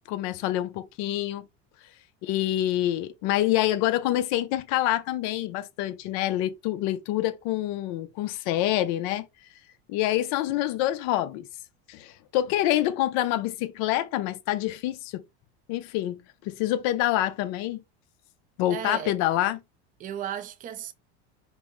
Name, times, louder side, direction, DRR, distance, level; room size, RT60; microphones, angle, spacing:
voice 1, 0.1-1.4 2.2-9.3 9.9-11.5 11.9-15.2 15.7-17.8 18.6-19.6, left 14 dB, 55° left, 0.7 m, -26 dB
voice 2, 18.7-19.2 20.0-20.9, right 10 dB, 25° right, 0.5 m, -35 dB
5.4 x 2.1 x 3.1 m
supercardioid pair, 135°, 33 cm